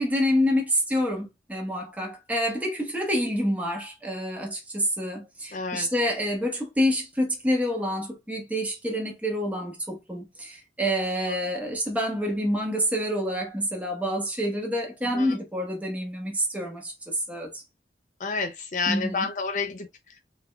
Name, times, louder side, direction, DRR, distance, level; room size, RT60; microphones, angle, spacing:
voice 1, 0.0-17.5 18.9-19.3, equal, 10° right, 1.1 m, -27 dB
voice 2, 5.5-5.9 11.3-11.4 15.1-15.4 18.2-20.2, left 4 dB, 45° left, 0.5 m, -30 dB
3.7 x 3.4 x 2.2 m
head